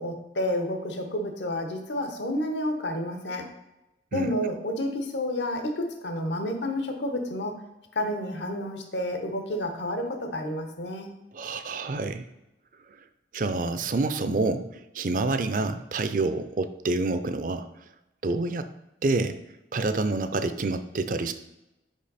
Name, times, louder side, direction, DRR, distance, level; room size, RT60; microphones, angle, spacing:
voice 1, 0.0-3.5 4.1-7.6 7.9-11.1, left 1 dB, 80° left, 5 dB, 1.0 m, -30 dB
voice 2, 11.3-12.3 13.3-17.7 18.2-18.7 19.0-19.4 19.7-21.3, right 3 dB, 45° right, 10 dB, 0.4 m, -27 dB
5.4 x 5.2 x 4.2 m, 0.95 s
head